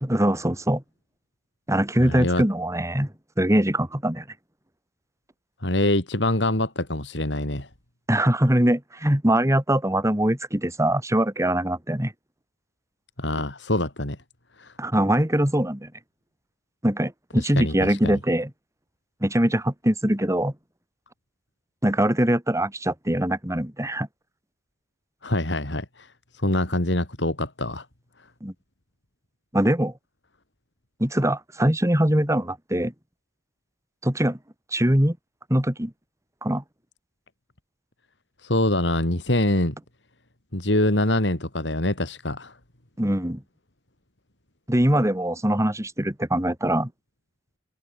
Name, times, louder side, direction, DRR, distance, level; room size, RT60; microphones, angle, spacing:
voice 1, 0.0-0.8 1.7-3.1 3.4-4.2 8.1-12.1 14.8-15.9 16.8-18.5 19.2-20.5 21.8-24.1 28.4-28.5 29.5-29.9 31.0-32.9 34.0-34.4 34.7-35.2 35.5-35.9 36.4-36.6 43.0-43.4 44.7-46.9, right 1 dB, 15° right, 3.1 m, -22 dB
voice 2, 2.0-2.4 5.6-7.7 13.2-14.2 14.6-14.7 17.4-18.2 25.2-26.1 26.3-27.9 38.4-39.7 40.5-42.6, left 1 dB, 80° left, 4.2 m, -25 dB
head